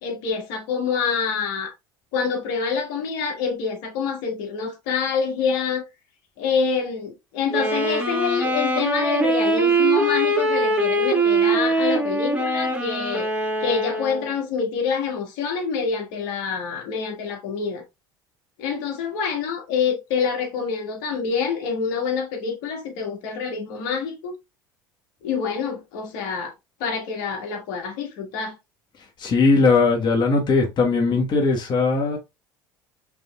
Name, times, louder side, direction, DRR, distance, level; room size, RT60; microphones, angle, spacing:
voice 1, 0.0-1.7 2.1-5.8 6.4-13.3 13.6-17.8 18.6-24.3 25.2-26.5 26.8-28.5, left 6 dB, 70° left, 1.6 m, -26 dB
Wind instrument woodwind instrument, 7.5-14.4, right 2 dB, 10° right, 1.8 m, -22 dB
voice 2, 29.2-32.2, left 4 dB, 40° left, 1.3 m, -19 dB
5.0 x 3.3 x 2.3 m
hypercardioid pair, 80°, 11 cm